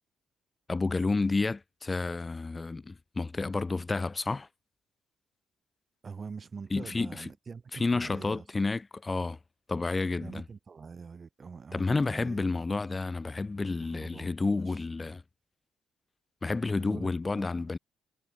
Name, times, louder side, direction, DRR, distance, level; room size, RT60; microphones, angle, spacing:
voice 1, 0.7-4.5 6.7-7.2 7.7-9.4 9.7-10.4 11.7-15.2 16.4-17.8, left 3 dB, 25° left, 1.2 m, -30 dB
voice 2, 6.0-8.4 10.2-12.4 13.9-14.3 14.7-14.8 16.7-17.1 17.3-17.5, right 5 dB, 40° right, 4.5 m, -44 dB
cardioid pair, 90°, 0 cm